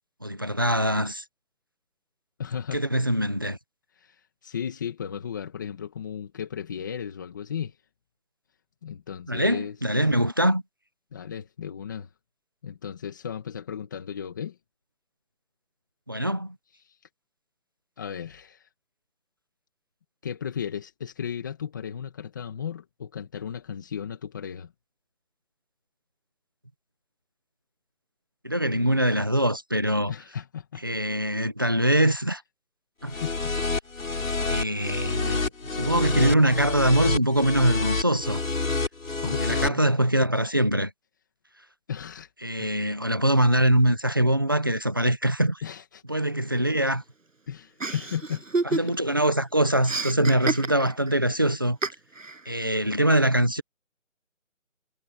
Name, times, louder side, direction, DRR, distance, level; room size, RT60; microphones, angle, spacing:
voice 1, 0.2-1.2 2.7-3.6 9.3-10.6 16.1-16.6 28.4-30.1 30.8-32.4 33.0-33.1 34.5-38.4 39.2-40.9 42.4-45.6 46.1-47.0 48.8-51.8 52.5-53.6, right 1 dB, 15° right, 0.9 m, -23 dB
voice 2, 2.4-2.8 4.0-7.8 8.8-9.8 11.1-12.1 12.6-14.6 16.9-17.0 18.0-18.7 20.2-24.7 30.1-30.8 33.1-33.5 39.2-39.9 41.9-42.3 42.6-42.7 45.6-46.0 47.5-48.4 48.7-48.9, left 8 dB, 15° left, 1.9 m, -35 dB
sound 1, 33.1-39.7, left 3 dB, 85° left, 7.0 m, -28 dB
Chuckle chortle, 47.8-49.2 49.4-51.1 51.8-52.4, right 3 dB, 75° right, 6.8 m, -29 dB
hypercardioid pair, 175°, 39 cm